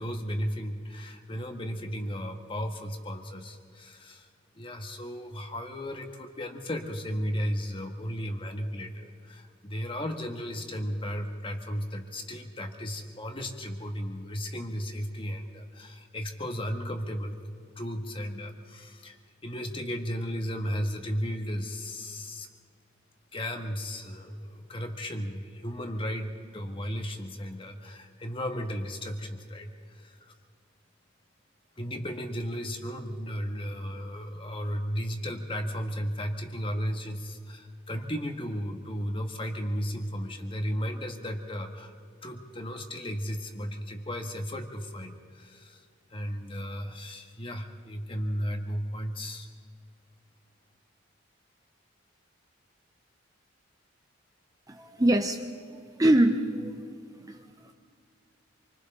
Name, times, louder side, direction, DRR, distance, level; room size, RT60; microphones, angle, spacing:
voice 1, 0.0-4.3 4.5-17.4 17.8-19.2 19.4-22.5 23.3-30.3 31.8-41.9 42.2-45.8 46.1-49.5, equal, 25° left, 4 dB, 1.6 m, -35 dB
voice 2, 54.7-55.5 56.0-56.9 57.2-57.7, right 1 dB, 15° right, 5 dB, 0.7 m, -24 dB
27.5 x 25.0 x 3.8 m, 2.3 s
head